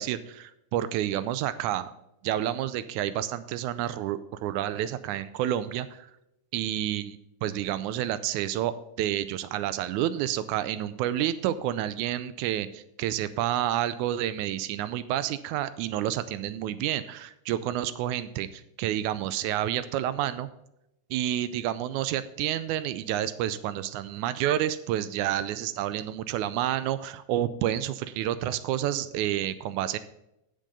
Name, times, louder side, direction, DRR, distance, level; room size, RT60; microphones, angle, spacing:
voice 1, 0.0-1.9 2.2-6.1 6.5-7.1 7.4-20.5 21.1-30.0, right 12 dB, 90° right, 14 dB, 2.0 m, -29 dB
10.0 x 6.6 x 5.4 m, 0.83 s
omnidirectional pair, 3.4 m